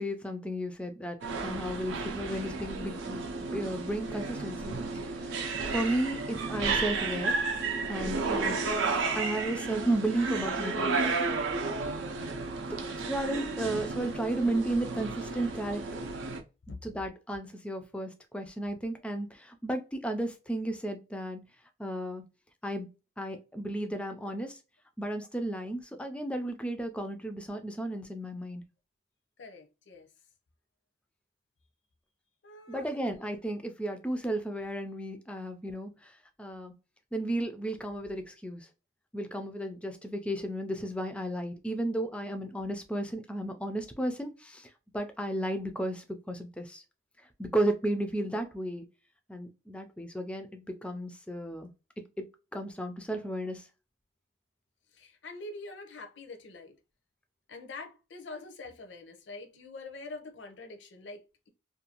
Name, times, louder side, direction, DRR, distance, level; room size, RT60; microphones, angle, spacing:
voice 1, 0.0-7.4 7.9-8.6 9.1-11.2 12.7-12.8 13.1-16.1 16.8-21.4 21.8-22.2 22.6-22.9 23.2-24.6 25.0-28.6 32.7-36.1 36.4-36.7 37.1-38.7 39.1-46.8 47.4-48.9 49.3-51.7 52.2-53.7, right 1 dB, 5° left, 0.3 m, -34 dB
sound 1, 1.2-16.4, right 4 dB, 80° right, 0.5 m, -32 dB
voice 2, 29.4-30.1 32.4-33.2 54.9-56.8 57.5-61.5, left 3 dB, 70° left, 0.6 m, -45 dB
2.6 x 2.3 x 2.8 m
head